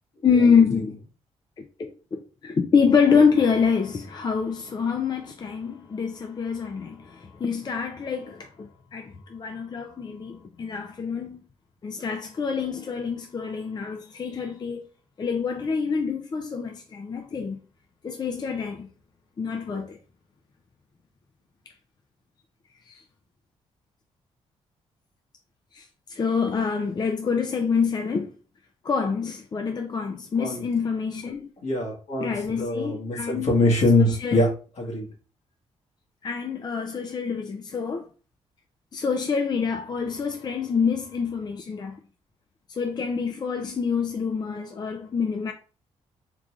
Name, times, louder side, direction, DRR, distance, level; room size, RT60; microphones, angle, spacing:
voice 1, 0.2-1.0 1.6-11.4 11.8-14.9 15.2-17.6 18.0-18.9 19.4-20.0 22.9-23.0 25.7-28.3 28.8-31.5 32.2-33.5 34.0-34.4 36.2-38.0 38.9-42.0 42.7-45.5, left 6 dB, 35° left, 0.5 m, -26 dB
voice 2, 31.6-34.5 34.8-35.1, left 2 dB, 65° left, 1.4 m, -23 dB
3.7 x 3.0 x 2.4 m
cardioid pair, 80°, 12 cm